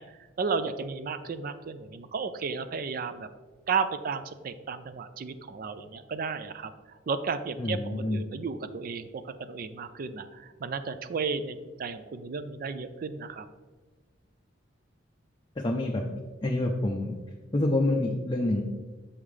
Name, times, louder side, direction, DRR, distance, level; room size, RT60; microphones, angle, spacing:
voice 1, 0.0-3.3 3.7-13.5, right 5 dB, 45° right, 11 dB, 0.4 m, -33 dB
voice 2, 7.6-8.2 15.6-16.0 16.4-17.1 17.5-18.6, left 1 dB, 25° left, 0 dB, 0.5 m, -27 dB
7.0 x 5.5 x 3.3 m, 1.4 s
head